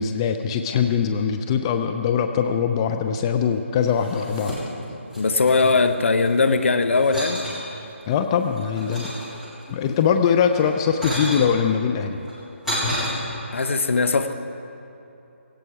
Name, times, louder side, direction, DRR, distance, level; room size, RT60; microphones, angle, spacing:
voice 1, 0.0-4.5 8.1-9.1 9.7-12.2, left 7 dB, 20° left, 6 dB, 0.5 m, -22 dB
sound 1, 3.9-4.9 5.1-6.5 7.0-7.6 8.2-9.7 10.5-11.5 12.2-13.1, left 1 dB, ahead, 3.5 m, -31 dB
voice 2, 5.2-7.4 13.5-14.3, left 3 dB, 70° left, 9 dB, 1.1 m, -20 dB
17.0 x 16.5 x 4.8 m, 2.8 s
figure-of-eight pair, 160°, 7 cm